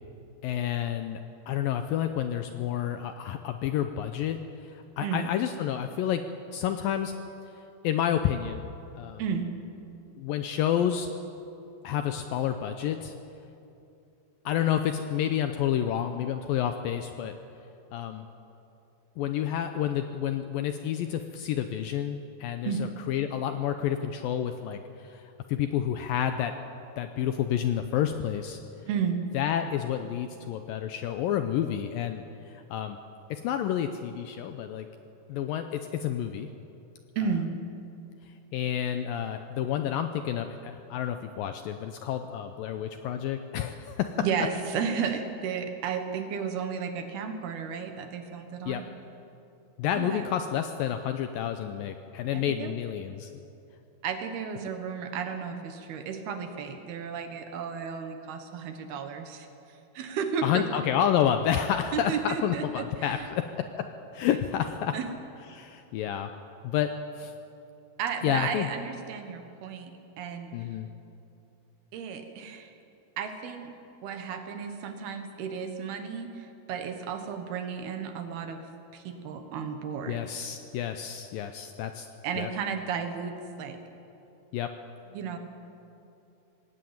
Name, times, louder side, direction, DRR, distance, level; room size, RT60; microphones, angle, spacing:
voice 1, 0.4-1.2 1.5-4.4 5.0-6.2 6.5-7.1 7.8-8.6 9.0-9.2 10.2-11.1 11.8-13.1 14.5-17.3 17.9-18.2 19.2-25.2 25.5-26.5 27.0-28.6 29.3-32.2 32.7-33.0 33.3-34.9 35.3-36.5 38.5-44.3 48.7-48.8 49.8-53.3 60.4-63.9 64.1-65.0 65.5-66.3 66.6-67.3 68.2-68.7 70.5-70.9 80.1-82.1 82.4-82.5 84.5-84.7, left 10 dB, 80° left, 7 dB, 2.1 m, -29 dB
voice 2, 28.9-29.2 37.2-37.5 44.2-48.9 49.9-50.3 52.3-52.7 54.0-59.5 59.9-60.6 61.9-63.3 64.9-65.1 68.0-69.9 70.2-70.5 71.9-72.7 73.2-73.7 74.0-78.6 78.9-80.2 82.2-83.8 85.1-85.4, right 6 dB, 70° right, 6 dB, 3.3 m, -33 dB
20.5 x 17.5 x 8.8 m, 2.8 s
omnidirectional pair, 4.8 m